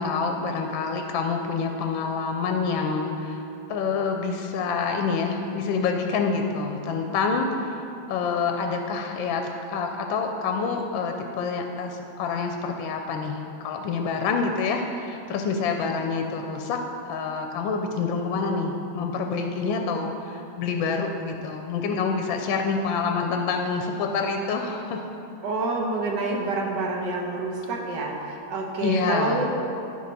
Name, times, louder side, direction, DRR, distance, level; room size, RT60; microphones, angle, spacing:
voice 1, 0.0-3.4 3.7-7.8 8.1-16.8 17.1-25.1 28.8-29.4, left 5 dB, 80° left, 3 dB, 1.3 m, -27 dB
voice 2, 25.4-29.5, right 3 dB, 65° right, 0 dB, 1.5 m, -27 dB
10.5 x 6.4 x 4.0 m, 2.8 s
omnidirectional pair, 2.2 m